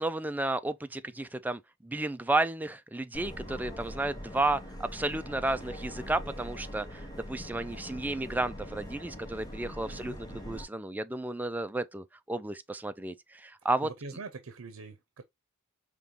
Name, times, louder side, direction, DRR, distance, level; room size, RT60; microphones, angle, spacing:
voice 1, 0.0-13.9, right 2 dB, 10° right, 0.3 m, -32 dB
Subway metro underground, 3.1-10.6, equal, 20° left, 1.2 m, -42 dB
voice 2, 9.9-10.6 13.8-15.2, right 4 dB, 85° right, 0.7 m, -44 dB
5.2 x 3.0 x 2.9 m
head